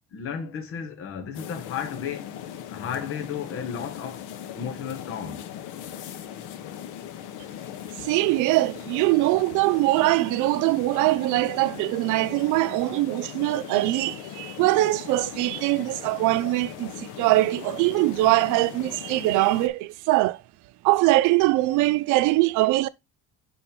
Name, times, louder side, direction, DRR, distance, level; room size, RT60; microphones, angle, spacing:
voice 1, 0.1-2.3 2.7-4.2 4.5-5.5, left 7 dB, 45° left, 1.1 m, -33 dB
sound 1, 1.3-19.7, left 10 dB, 85° left, 1.0 m, -39 dB
voice 2, 8.0-20.4 20.8-22.9, right 18 dB, 85° right, 0.6 m, -22 dB
5.4 x 4.1 x 4.3 m
cardioid pair, 145°, 30 cm